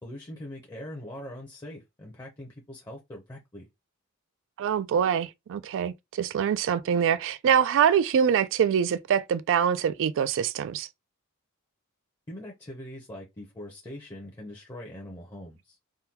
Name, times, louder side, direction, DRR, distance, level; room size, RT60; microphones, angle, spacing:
voice 1, 0.0-3.7 12.3-15.8, left 1 dB, 20° left, 0.7 m, -42 dB
voice 2, 4.6-10.9, right 8 dB, 60° right, 0.3 m, -24 dB
3.6 x 2.2 x 2.8 m
head